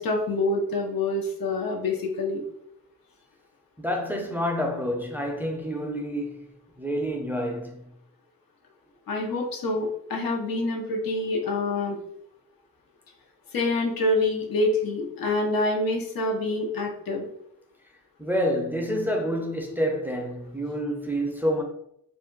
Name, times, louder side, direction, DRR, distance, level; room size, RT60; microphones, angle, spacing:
voice 1, 0.0-2.4 9.1-12.0 13.5-17.3, left 2 dB, 80° left, 0.8 m, -26 dB
voice 2, 3.8-7.8 18.2-21.6, equal, 5° right, 0.5 m, -28 dB
2.5 x 2.2 x 3.8 m
cardioid pair, 90°, 35 cm